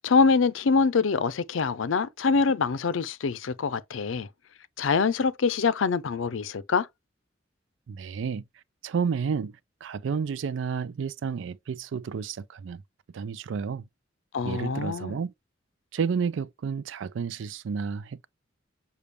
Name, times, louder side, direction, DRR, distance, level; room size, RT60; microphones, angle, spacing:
voice 1, 0.0-4.3 4.8-6.9 14.3-15.2, left 5 dB, 90° left, 0.5 m, -24 dB
voice 2, 7.9-8.4 8.8-12.8 13.1-13.8 14.4-15.3 15.9-18.3, right 6 dB, 70° right, 0.4 m, -31 dB
6.8 x 2.3 x 3.2 m
head